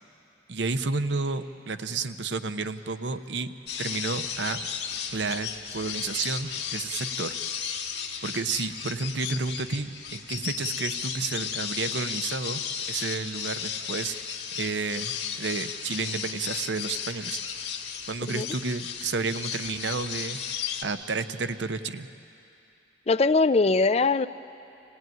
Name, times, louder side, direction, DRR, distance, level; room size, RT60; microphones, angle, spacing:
voice 1, 0.5-3.5 3.8-4.6 5.1-7.3 8.2-12.6 12.9-14.1 14.6-17.4 18.1-22.1, right 4 dB, 75° right, 10 dB, 0.8 m, -31 dB
sound 1, 3.7-20.8, left 7 dB, 65° left, 2.0 m, -34 dB
voice 2, 23.1-24.3, left 3 dB, 35° left, 14 dB, 0.4 m, -21 dB
26.5 x 17.5 x 9.3 m, 2.8 s
head